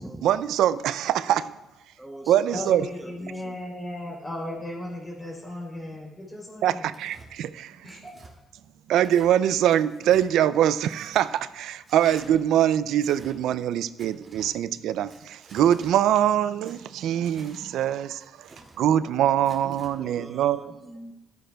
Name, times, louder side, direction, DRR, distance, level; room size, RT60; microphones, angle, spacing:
voice 1, 0.2-1.6 2.3-2.9 6.6-8.0 8.9-18.5 18.8-20.7, right 11 dB, 80° right, 15 dB, 0.3 m, -23 dB
voice 2, 2.0-3.6 19.6-21.1, right 1 dB, 10° right, 4 dB, 0.7 m, -43 dB
voice 3, 2.5-6.8 7.8-8.1, left 1 dB, 20° left, -4 dB, 3.3 m, -36 dB
Tearing, 6.9-7.3 7.9-8.3 9.0-9.3 9.7-10.3 10.8-11.3 11.8-12.3 12.9-13.3 14.0-14.5 15.1-15.9 16.6-17.6 18.2-18.8 19.4-19.9, right 3 dB, 40° right, 2.4 m, -50 dB
13.0 x 10.0 x 2.3 m, 1.0 s
cardioid pair, 90°, 0 cm